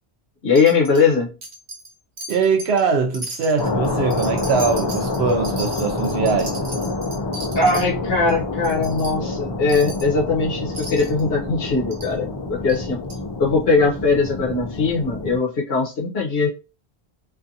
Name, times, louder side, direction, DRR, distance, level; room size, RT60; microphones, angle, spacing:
voice 1, 0.4-1.3 7.6-13.0 13.4-16.5, left 4 dB, 70° left, 1.0 m, -20 dB
Wind chime, 0.5-1.1 1.4-2.8 3.1-7.9 8.3-8.4 8.6-9.1 9.7-10.1 10.7-11.2 11.9-12.1 12.7-12.8 13.1-13.2, right 1 dB, 45° right, 0.9 m, -36 dB
voice 2, 2.3-6.6, right 5 dB, 85° right, 0.9 m, -22 dB
sound 1, 3.6-15.4, left 3 dB, 45° left, 0.3 m, -27 dB
2.6 x 2.5 x 2.6 m
omnidirectional pair, 1.1 m